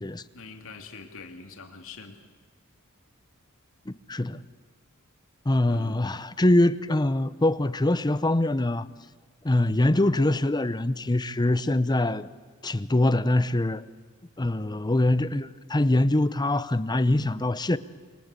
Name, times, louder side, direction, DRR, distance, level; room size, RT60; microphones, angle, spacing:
voice 1, 0.3-2.2 5.7-6.1, left 4 dB, 65° left, 2.5 m, -44 dB
voice 2, 3.9-4.4 5.5-8.9 9.4-12.3 12.6-13.8 14.4-17.8, left 1 dB, 20° left, 0.7 m, -24 dB
28.5 x 22.5 x 8.3 m
head